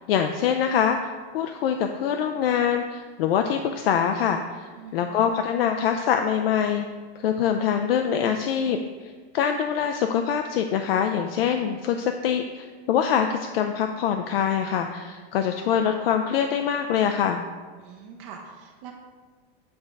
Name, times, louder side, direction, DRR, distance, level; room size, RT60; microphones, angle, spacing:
voice 1, 0.0-6.9 7.2-17.4, left 8 dB, 65° left, 6 dB, 0.5 m, -24 dB
voice 2, 4.7-5.3 17.8-18.9, right 6 dB, 30° right, 1 dB, 0.5 m, -43 dB
7.8 x 3.5 x 5.2 m, 1.5 s
supercardioid pair, 170°, 31 cm